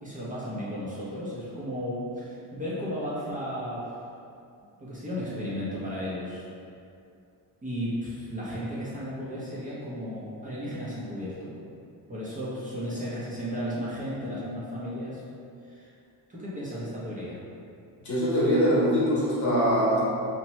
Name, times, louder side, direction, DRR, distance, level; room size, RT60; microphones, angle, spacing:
voice 1, 0.0-3.8 4.8-6.5 7.6-11.5 12.1-15.2 15.6-15.9 16.3-17.4, equal, 20° right, -9 dB, 0.6 m, -34 dB
voice 2, 18.0-20.0, equal, 45° left, -7 dB, 0.9 m, -23 dB
2.8 x 2.1 x 3.0 m, 2.5 s
cardioid pair, 115°, 41 cm